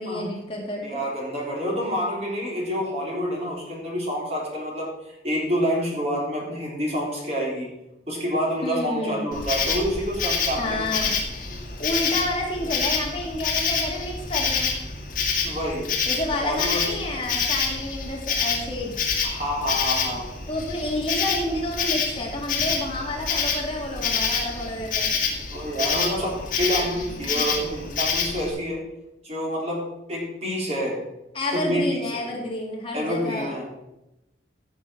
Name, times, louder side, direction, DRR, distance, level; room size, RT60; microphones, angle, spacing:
voice 1, 0.0-1.0 8.6-9.3 10.6-11.1 11.8-14.7 16.1-18.9 20.5-25.1 27.2-27.5 31.3-33.6, left 1 dB, 30° left, -1 dB, 2.0 m, -29 dB
voice 2, 0.8-4.9 5.2-7.7 8.1-11.0 11.5-11.7 15.4-16.0 16.4-17.0 19.2-20.3 25.5-28.8 29.2-31.0 31.5-32.3 32.9-33.7, equal, 35° right, -3 dB, 3.4 m, -28 dB
Insect, 9.3-28.5, left 5 dB, 50° left, 2.1 m, -27 dB
15.0 x 6.6 x 4.5 m, 0.91 s
head